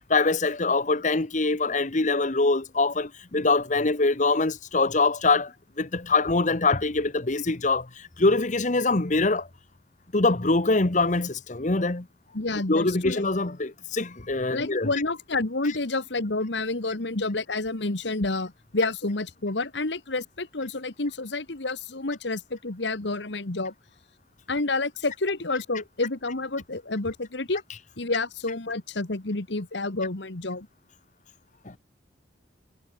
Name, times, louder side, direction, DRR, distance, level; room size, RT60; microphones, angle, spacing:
voice 1, 0.0-9.5 10.1-12.1 12.7-14.9 31.6-31.7, left 3 dB, 40° left, 1.2 m, -24 dB
voice 2, 12.3-13.2 14.5-23.7 24.5-27.6 28.0-30.7, left 2 dB, 70° left, 1.7 m, -29 dB
head